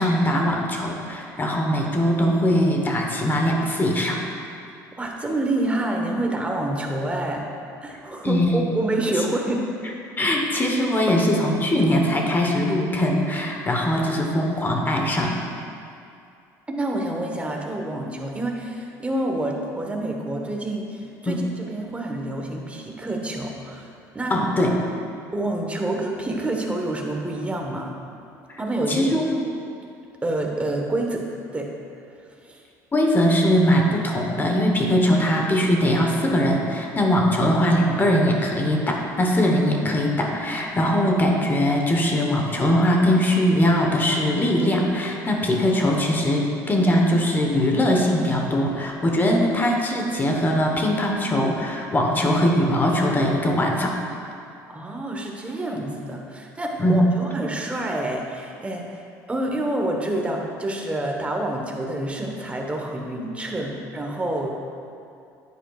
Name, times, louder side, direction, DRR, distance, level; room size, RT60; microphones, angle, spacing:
voice 1, 0.0-4.2 8.2-8.6 10.2-15.4 21.3-21.5 24.3-24.8 28.5-28.6 28.9-29.4 32.9-54.0 56.8-57.0, equal, 25° left, 1 dB, 1.1 m, -21 dB
voice 2, 5.0-7.5 7.8-9.7 16.7-24.4 25.3-28.0 28.6-29.2 30.2-31.3 31.5-31.7 32.4-32.6 54.7-59.0 59.3-64.5, right 1 dB, 15° right, 1 dB, 1.2 m, -27 dB
9.7 x 8.2 x 2.4 m, 2.5 s
supercardioid pair, 85°, 8 cm